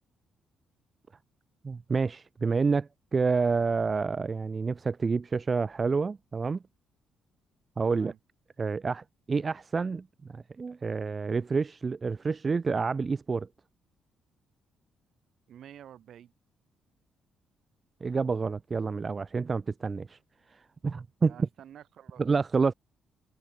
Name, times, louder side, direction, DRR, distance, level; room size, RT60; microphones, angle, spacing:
voice 1, 1.6-6.6 7.8-8.1 8.6-13.5 18.0-20.2 20.5-21.3 22.2-22.7, right 4 dB, 40° right, 0.3 m, -29 dB
voice 2, 15.5-16.3 21.2-22.2, right 10 dB, 65° right, 2.1 m, -49 dB
hypercardioid pair, 45°, 0 cm